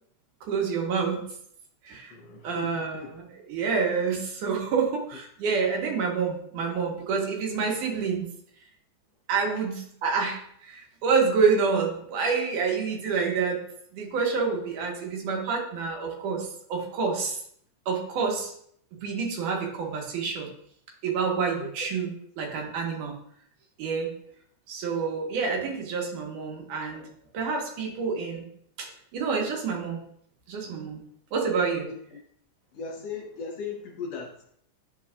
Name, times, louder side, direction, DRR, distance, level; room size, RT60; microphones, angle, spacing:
voice 1, 0.5-1.2 1.8-2.1 2.4-8.3 9.3-13.6 13.9-17.4 17.9-18.5 19.0-20.5 21.0-23.2 23.8-24.1 24.7-27.1 27.3-28.5 28.8-28.9 29.1-30.0 30.5-31.0 31.3-31.9, right 5 dB, 85° right, 0 dB, 2.7 m, -28 dB
voice 2, 2.1-3.2 21.6-21.9 31.9-32.2 32.7-34.6, left 5 dB, 70° left, 1 dB, 1.6 m, -38 dB
9.9 x 4.6 x 2.4 m, 0.67 s
omnidirectional pair, 3.6 m